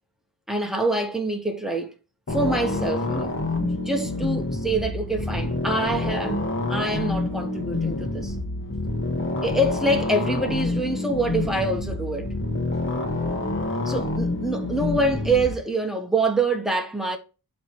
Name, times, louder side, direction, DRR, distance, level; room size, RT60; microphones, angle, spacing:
voice 1, 0.5-1.9 2.3-8.3 9.4-12.3 13.8-17.2, right 2 dB, ahead, 1.3 m, -26 dB
sound 1, 2.3-15.5, left 2 dB, 30° left, 1.6 m, -27 dB
7.9 x 3.3 x 6.0 m
wide cardioid pair, 120°, 38 cm